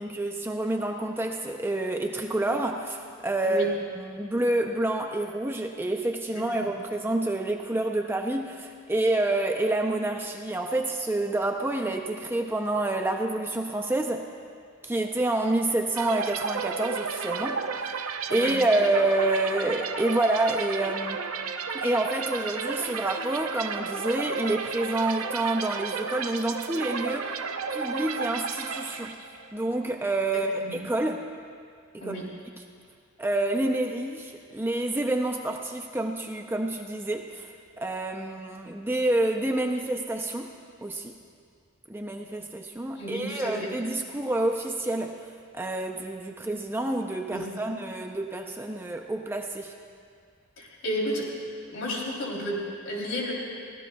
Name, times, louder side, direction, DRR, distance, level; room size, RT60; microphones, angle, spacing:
voice 1, 0.0-14.2 14.8-17.6 18.3-21.2 21.7-27.4 27.7-29.2 29.5-31.3 31.9-32.2 33.2-40.5 40.8-41.2 41.9-49.7, right 2 dB, 10° right, 3 dB, 0.5 m, -28 dB
voice 2, 6.3-6.7 18.3-18.5 30.3-30.8 32.0-32.3 43.0-43.7 47.3-47.8 50.6-51.3 51.7-53.3, equal, 60° left, -3 dB, 3.2 m, -32 dB
sound 1, 15.9-29.5, right 5 dB, 90° right, 0.7 m, -33 dB
24.0 x 16.5 x 2.3 m, 2.2 s
head